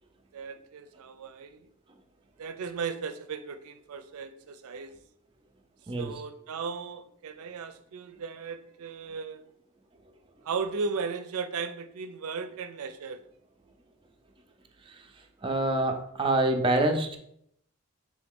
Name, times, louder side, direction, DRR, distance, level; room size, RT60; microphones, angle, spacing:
voice 1, 0.3-1.7 2.4-4.9 6.0-9.4 10.4-13.2, right 5 dB, 85° right, 9 dB, 0.4 m, -36 dB
voice 2, 14.8-17.2, right 2 dB, 25° right, 4 dB, 0.4 m, -27 dB
3.9 x 3.1 x 3.6 m, 0.72 s
head